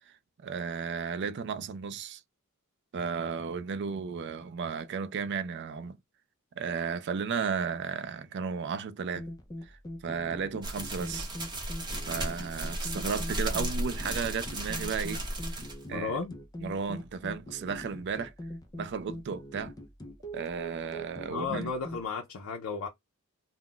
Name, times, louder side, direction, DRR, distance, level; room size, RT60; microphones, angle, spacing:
voice 1, 0.4-2.2 2.9-6.0 6.6-9.3 9.6-9.8 10.0-11.3 12.1-15.3 15.9-16.2 16.6-18.3 18.8-19.7 20.3-21.7, right 6 dB, 55° right, 0.4 m, -34 dB
sound 1, 9.2-22.0, equal, 15° left, 0.4 m, -43 dB
sound 2, 10.6-15.8, right 1 dB, 20° right, 0.7 m, -35 dB
voice 2, 15.9-16.3 21.3-22.9, left 5 dB, 75° left, 0.5 m, -34 dB
2.3 x 2.0 x 3.7 m
head